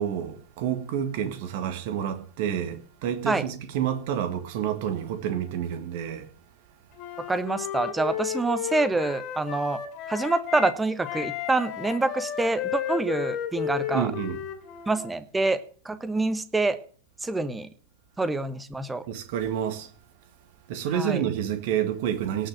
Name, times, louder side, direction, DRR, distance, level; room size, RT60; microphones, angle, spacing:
voice 1, 0.0-6.3 13.9-14.4 19.1-19.9 20.7-22.5, right 9 dB, 50° right, 2.0 m, -29 dB
Wind instrument woodwind instrument, 7.0-10.8 11.0-15.1, left 10 dB, 35° left, 2.9 m, -33 dB
voice 2, 7.3-9.8 10.1-14.1 14.9-15.6 15.8-16.8 17.2-17.7 18.2-19.0 20.9-21.2, right 3 dB, 10° right, 1.2 m, -26 dB
18.0 x 6.3 x 7.7 m
figure-of-eight pair, 90°, 0 cm